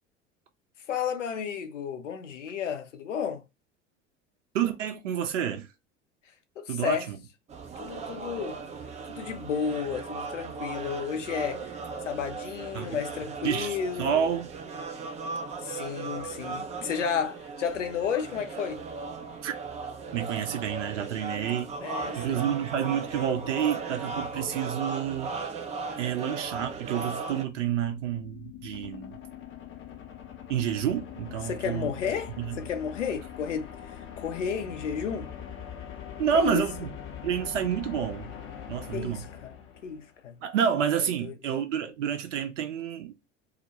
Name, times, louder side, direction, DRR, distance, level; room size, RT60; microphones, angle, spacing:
voice 1, 0.9-3.4 6.6-7.1 7.8-8.6 9.1-14.2 15.6-18.8 21.8-22.4 31.4-33.7 34.2-35.3 36.3-36.6 38.9-39.5 39.8-40.4 41.2-41.3, left 7 dB, 80° left, 0.5 m, -32 dB
voice 2, 4.5-5.7 6.7-7.2 12.7-13.0 13.4-14.6 19.4-19.5 20.1-21.7 22.1-25.3 26.0-29.2 30.5-31.9 32.4-32.6 36.2-36.9 37.2-38.3 38.7-39.2 40.4-43.1, right 8 dB, 75° right, 0.5 m, -29 dB
sound 1, 7.5-27.4, right 4 dB, 20° right, 0.4 m, -37 dB
sound 2, 27.3-40.3, left 9 dB, 35° left, 0.6 m, -43 dB
2.1 x 2.1 x 2.7 m
figure-of-eight pair, 70°, 37 cm